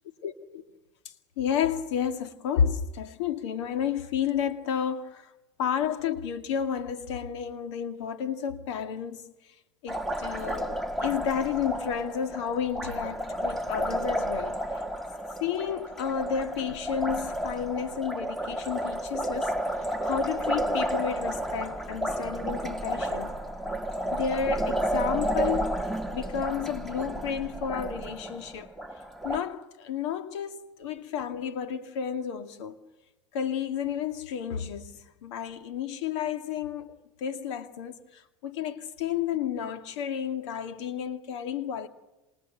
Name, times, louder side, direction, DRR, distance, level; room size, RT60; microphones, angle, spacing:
voice 1, 0.2-0.6 1.0-5.3 5.6-9.3 9.8-14.6 15.4-23.4 24.1-25.9 26.1-28.7 29.2-32.8 33.3-41.9, left 8 dB, 70° left, 2.2 m, -31 dB
Liquid, 9.9-29.4, right 1 dB, ahead, 2.0 m, -31 dB
28.5 x 27.0 x 6.5 m
hypercardioid pair, 85°, 15 cm